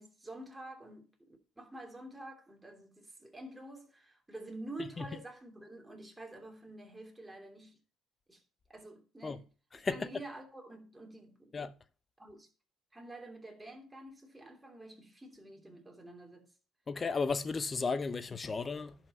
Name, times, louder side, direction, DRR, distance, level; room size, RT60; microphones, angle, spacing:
voice 1, 0.0-7.8 8.3-8.4 8.7-9.4 9.7-11.6 12.2-12.5 12.9-16.5, right 2 dB, 10° right, 2.9 m, -48 dB
voice 2, 9.7-10.1 11.5-11.7 16.9-19.1, left 4 dB, 30° left, 0.8 m, -34 dB
11.0 x 5.9 x 5.4 m
supercardioid pair, 85°, 0 cm